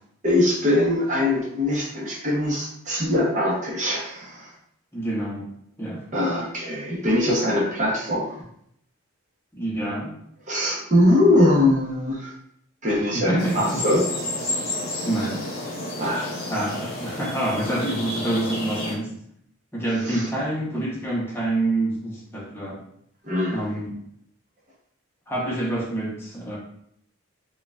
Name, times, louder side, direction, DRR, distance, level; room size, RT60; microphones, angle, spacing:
voice 1, 0.2-4.5 6.1-8.4 10.5-12.3 12.8-14.0 16.0-16.3 20.0-20.3 23.2-23.6, left 1 dB, 35° right, -3 dB, 0.7 m, -22 dB
voice 2, 4.9-5.5 5.8-6.0 9.6-10.2 13.1-13.8 15.0-15.4 16.5-19.2 19.7-22.8 23.5-24.0 25.3-26.6, right 1 dB, 10° left, -5 dB, 0.7 m, -27 dB
sound 1, 13.4-18.9, left 1 dB, 45° left, 0.9 m, -31 dB
4.5 x 2.3 x 2.3 m, 0.70 s
head